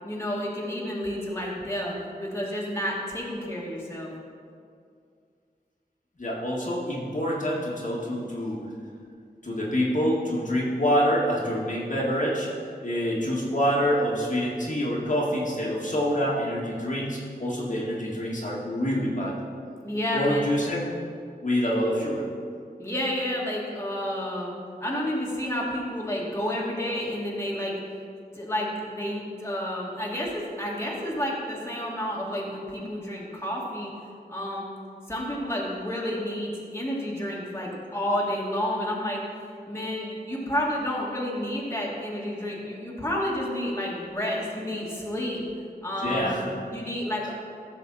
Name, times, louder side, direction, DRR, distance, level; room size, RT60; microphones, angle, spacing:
voice 1, 0.0-4.1 19.8-20.4 22.8-24.5 24.8-27.7 28.3-33.9 34.3-34.6 35.1-39.2 39.7-45.4 45.8-46.3 46.7-47.3, left 1 dB, 15° left, -5 dB, 2.2 m, -30 dB
voice 2, 6.2-8.6 9.4-12.5 12.8-19.4 20.1-20.8 21.4-22.3 46.0-46.5, equal, 45° left, -5 dB, 2.0 m, -26 dB
15.0 x 6.4 x 4.2 m, 2.3 s
wide cardioid pair, 70°, 17 cm